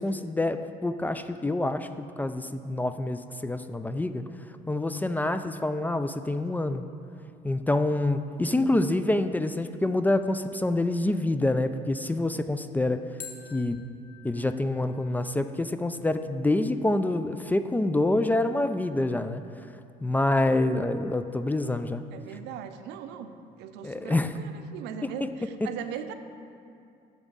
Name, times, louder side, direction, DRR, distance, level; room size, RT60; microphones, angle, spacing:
voice 1, 0.0-4.2 4.7-6.8 7.4-13.0 13.5-13.8 14.2-19.4 20.0-22.0 23.8-24.4 25.0-25.1, left 2 dB, 10° left, 10 dB, 0.3 m, -27 dB
sound 1, 13.2-16.1, left 7 dB, 50° left, 1.1 m, -50 dB
voice 2, 22.1-26.1, right 8 dB, 90° right, 9 dB, 0.6 m, -39 dB
11.0 x 7.2 x 3.9 m, 2.5 s
cardioid pair, 110°, 17 cm